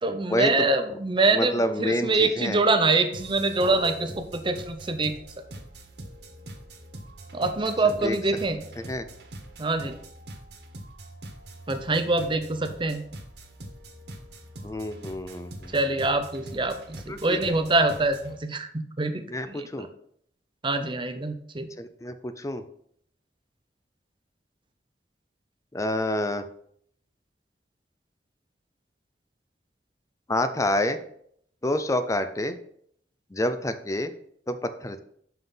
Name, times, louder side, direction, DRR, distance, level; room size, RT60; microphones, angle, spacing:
voice 1, 0.0-5.1 7.3-8.6 9.6-10.0 11.7-13.0 15.7-19.9 20.6-21.7, right 3 dB, 30° right, 8 dB, 0.7 m, -25 dB
voice 2, 1.3-2.6 8.0-8.2 8.8-9.1 14.6-15.7 17.1-17.4 19.3-19.9 21.8-22.6 25.7-26.4 30.3-31.0 31.6-32.6 33.3-34.1 34.5-35.0, left 1 dB, 20° left, 10 dB, 0.5 m, -28 dB
sound 1, 3.1-18.4, right 1 dB, 70° right, 1.5 m, -43 dB
5.7 x 5.6 x 5.6 m, 0.67 s
head